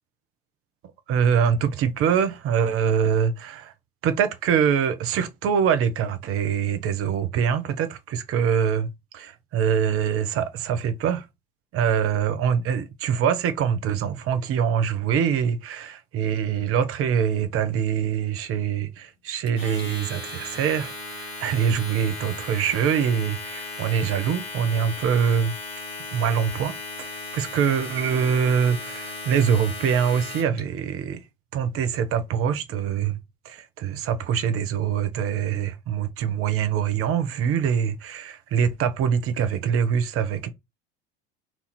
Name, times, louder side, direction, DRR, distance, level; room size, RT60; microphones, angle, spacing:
voice 1, 1.1-3.7 4.0-8.9 9.1-11.3 11.7-25.5 26.1-31.2 31.5-33.2 33.4-40.5, right 7 dB, 45° right, 1.0 m, -24 dB
Domestic sounds home sounds, 19.5-30.6, left 3 dB, 90° left, 1.6 m, -36 dB
4.4 x 2.8 x 4.1 m
hypercardioid pair, 75°, 30 cm